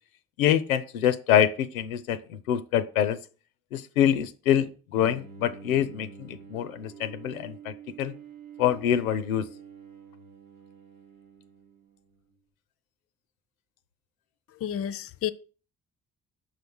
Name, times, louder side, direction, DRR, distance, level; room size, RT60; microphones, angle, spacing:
voice 1, 0.4-3.2 3.7-8.1 8.6-9.5, left 10 dB, 80° left, 0.5 m, -25 dB
Bowed string instrument, 4.9-12.2, right 6 dB, 90° right, 0.9 m, -48 dB
voice 2, 14.6-15.3, left 10 dB, 35° left, 0.5 m, -30 dB
6.4 x 4.0 x 6.2 m
figure-of-eight pair, 45°, 41 cm